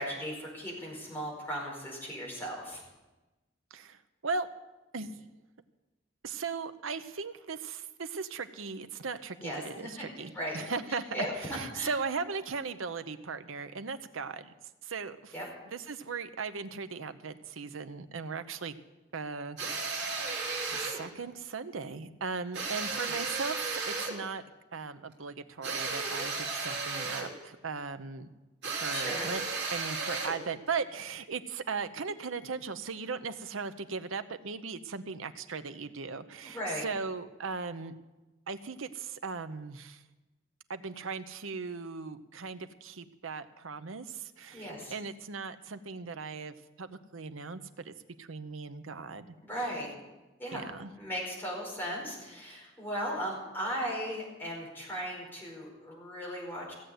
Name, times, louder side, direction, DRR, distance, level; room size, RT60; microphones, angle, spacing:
voice 1, 0.0-2.8 9.4-10.0 10.3-10.6 10.9-11.9 15.3-15.4 23.1-23.2 28.9-29.3 36.4-36.9 44.5-44.9 49.4-49.9 50.4-50.6 50.9-56.7, equal, 10° left, -4 dB, 4.8 m, -37 dB
voice 2, 3.7-4.5 4.9-5.2 6.2-14.5 14.8-15.3 15.7-18.8 19.1-20.2 20.6-24.4 24.7-28.3 28.8-29.4 29.7-37.9 38.5-40.0 40.7-49.4 50.5-50.9, right 4 dB, 85° right, 11 dB, 0.8 m, -38 dB
sound 1, 19.6-21.0 22.5-24.2 25.6-27.4 28.6-30.4, right 4 dB, 55° right, 3.2 m, -34 dB
16.0 x 8.0 x 7.8 m, 1.1 s
head